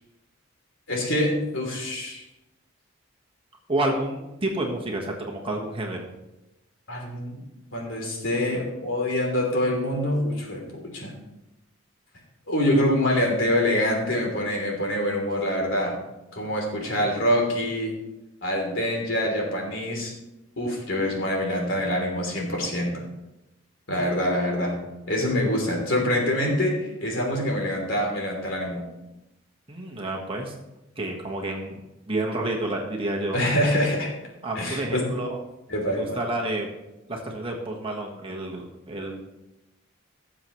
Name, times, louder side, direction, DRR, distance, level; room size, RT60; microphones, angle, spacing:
voice 1, 0.9-2.2 6.9-7.4 7.7-11.1 12.5-16.0 16.3-17.9 18.4-20.1 20.6-23.0 23.9-24.8 25.1-28.8 33.3-34.1 34.6-35.1 35.7-36.2, left 1 dB, 65° left, -1 dB, 3.4 m, -25 dB
voice 2, 3.7-6.0 29.7-30.5 31.0-33.4 34.4-35.4 36.0-36.7 37.1-39.2, right 1 dB, 25° right, 0 dB, 1.5 m, -29 dB
18.5 x 7.4 x 3.2 m, 0.96 s
head